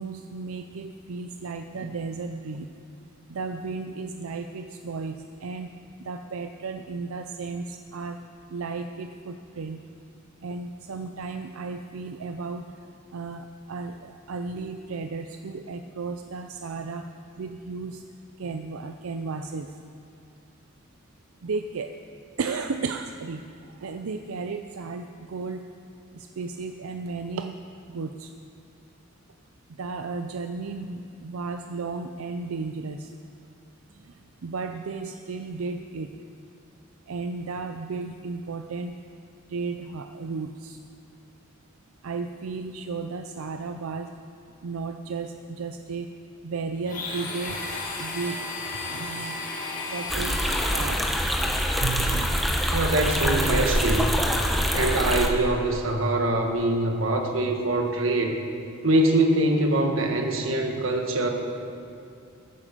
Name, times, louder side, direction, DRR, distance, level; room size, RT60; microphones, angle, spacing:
voice 1, 0.0-2.7 3.3-5.7 6.0-8.2 8.5-9.8 10.4-12.7 13.1-17.1 17.4-18.0 18.4-19.8 21.4-22.0 22.4-25.7 26.1-27.6 27.9-28.3 29.8-33.1 34.0-36.2 37.1-38.9 39.5-40.8 42.0-44.1 44.6-46.2 46.4-47.6 48.0-51.3 51.8-52.6, right 4 dB, 90° right, 7 dB, 0.5 m, -34 dB
Domestic sounds home sounds, 46.8-51.3, left 2 dB, 40° left, 2.0 m, -34 dB
sound 1, 50.1-55.3, equal, ahead, 1.1 m, -25 dB
voice 2, 52.7-54.2 54.7-58.4 58.8-61.3, right 1 dB, 65° right, 3 dB, 1.5 m, -23 dB
15.0 x 8.6 x 6.7 m, 2.5 s
head